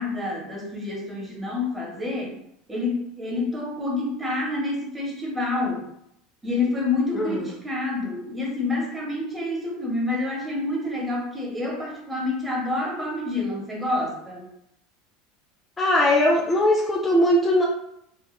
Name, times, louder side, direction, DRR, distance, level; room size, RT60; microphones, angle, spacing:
voice 1, 0.0-2.4 2.7-5.8 6.4-14.4, left 2 dB, 15° right, -2 dB, 0.9 m, -28 dB
voice 2, 7.1-7.5 15.8-17.6, left 1 dB, 20° left, -2 dB, 0.4 m, -20 dB
2.9 x 2.2 x 2.3 m, 0.76 s
hypercardioid pair, 85°, 0 cm